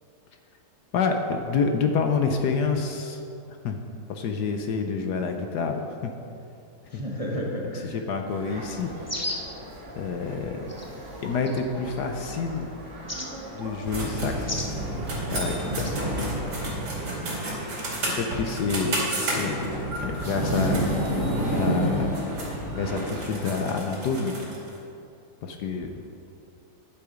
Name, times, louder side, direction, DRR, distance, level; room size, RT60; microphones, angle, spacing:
voice 1, 0.9-3.2 3.6-3.8 4.1-6.1 6.9-7.0 8.1-8.9 10.0-10.7 11.2-12.7 13.5-14.7 15.3-15.9 18.1-19.7 20.0-20.8 21.5-22.1 22.4-24.4 25.4-26.0, left 5 dB, 65° left, 4 dB, 1.2 m, -28 dB
voice 2, 6.9-8.0 16.9-17.6 18.0-18.4, equal, 25° right, -2 dB, 0.8 m, -34 dB
sound 1, 8.3-16.5, right 1 dB, 50° right, 2.8 m, -41 dB
sound 2, 9.1-9.5 10.7-10.9 11.5-12.0 13.1-13.3 14.5-14.7 15.8-16.0, left 2 dB, 15° left, 0.6 m, -33 dB
sound 3, 13.8-24.7, right 1 dB, 85° right, 3.3 m, -29 dB
10.5 x 9.7 x 5.0 m, 2.6 s
omnidirectional pair, 2.1 m